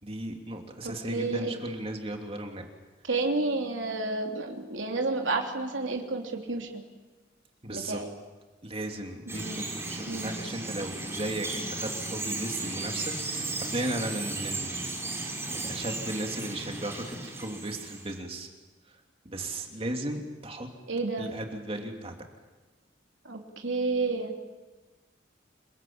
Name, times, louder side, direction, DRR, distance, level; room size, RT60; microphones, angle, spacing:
voice 1, 0.0-2.7 7.6-8.0 8.6-18.5 19.2-20.7 21.2-22.1, right 1 dB, 30° right, 3 dB, 2.9 m, -36 dB
voice 2, 0.8-1.7 3.0-6.8 7.7-8.1 9.3-9.6 10.1-10.3 20.9-21.3 23.2-24.3, right 3 dB, 75° right, 2 dB, 3.2 m, -31 dB
Bird vocalization bird call bird song, 9.3-18.2, right 2 dB, 15° right, 5.2 m, -35 dB
29.5 x 21.0 x 8.8 m, 1.3 s
head